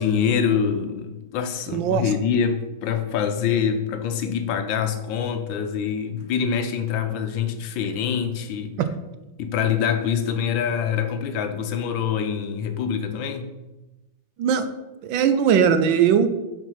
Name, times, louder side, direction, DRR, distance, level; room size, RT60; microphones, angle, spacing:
voice 1, 0.0-8.8 9.4-13.5, left 7 dB, 80° left, 8 dB, 1.4 m, -25 dB
voice 2, 1.7-2.0 8.8-8.9 14.4-14.7 15.0-16.3, right 8 dB, 80° right, 10 dB, 1.3 m, -19 dB
5.7 x 4.7 x 5.6 m, 1.0 s
omnidirectional pair, 2.2 m